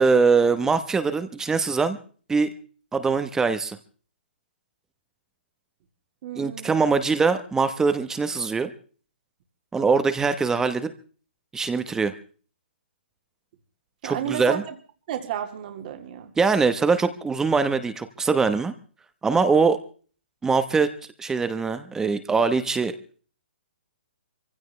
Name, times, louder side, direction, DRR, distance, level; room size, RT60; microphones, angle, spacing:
voice 1, 0.0-2.0 2.3-2.5 2.9-3.8 6.4-8.7 9.7-10.9 11.5-12.1 14.0-14.6 16.4-18.7 19.2-19.8 20.4-20.9 21.2-22.9, right 4 dB, 10° right, 11 dB, 1.0 m, -22 dB
voice 2, 6.2-6.9 14.0-14.6 15.1-16.3 19.6-19.7, right 10 dB, 45° right, 5 dB, 2.1 m, -32 dB
23.5 x 16.0 x 3.3 m, 0.41 s
hypercardioid pair, 140°, 6 cm